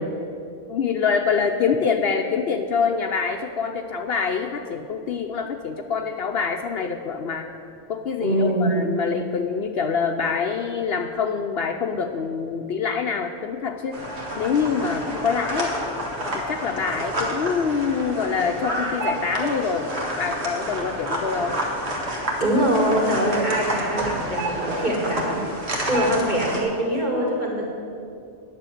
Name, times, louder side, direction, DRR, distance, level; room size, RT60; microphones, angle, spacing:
voice 1, 0.7-7.5 7.9-14.0 14.4-15.7 16.3-21.5, left 6 dB, 60° left, 5 dB, 0.8 m, -25 dB
voice 2, 8.2-8.7 22.4-25.4 25.9-27.6, equal, 40° right, -3 dB, 2.5 m, -23 dB
sound 1, 13.9-26.6, right 1 dB, 60° right, 2.0 m, -29 dB
9.8 x 7.1 x 9.1 m, 2.6 s
omnidirectional pair, 1.2 m